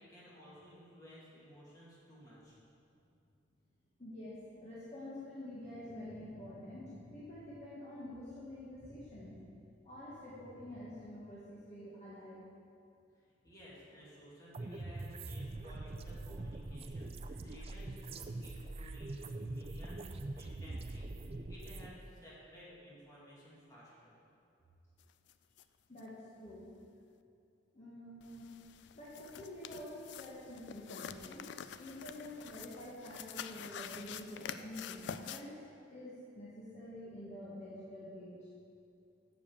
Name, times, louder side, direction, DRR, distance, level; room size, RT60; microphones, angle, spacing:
voice 1, 0.0-2.6 13.4-24.2, equal, 20° left, -7 dB, 2.3 m, -56 dB
voice 2, 4.0-12.5 25.9-26.7 27.7-28.5 28.9-38.5, left 1 dB, 35° left, -9 dB, 1.5 m, -48 dB
sound 1, 14.5-21.9, right 2 dB, 30° right, 0.4 m, -43 dB
sound 2, 25.3-25.4 25.6-25.7 26.0-26.1 28.2-35.4, left 8 dB, 65° left, 0.3 m, -47 dB
7.3 x 6.7 x 7.1 m, 2.6 s
head